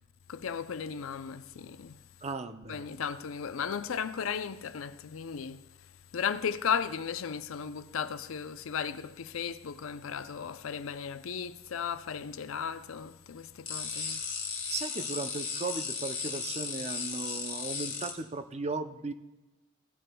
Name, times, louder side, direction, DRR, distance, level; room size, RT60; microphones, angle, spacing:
voice 1, 0.3-2.0 2.7-5.6 6.1-14.2, left 7 dB, 75° left, 0.5 m, -35 dB
voice 2, 2.2-2.9 14.7-19.1, right 3 dB, 30° right, 0.5 m, -36 dB
sound 1, 13.7-18.1, left 5 dB, 30° left, 2.7 m, -35 dB
16.0 x 10.0 x 2.2 m
head